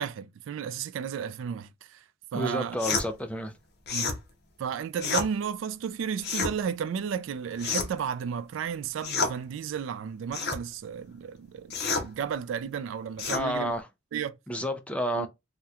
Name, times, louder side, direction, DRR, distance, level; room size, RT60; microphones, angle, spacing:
voice 1, 0.0-2.0 2.3-2.8 3.9-4.1 4.6-13.7 14.1-14.3 15.2-15.3, right 7 dB, 75° right, 0.3 m, -33 dB
voice 2, 2.3-3.5 13.3-13.9 14.5-15.3, equal, 5° left, 0.4 m, -30 dB
sound 1, 2.8-3.1 3.9-4.2 5.0-5.3 6.2-6.5 7.6-8.0 9.0-9.4 10.3-10.6 11.7-12.1 13.2-13.5, left 4 dB, 55° left, 0.7 m, -29 dB
2.8 x 2.1 x 3.5 m
head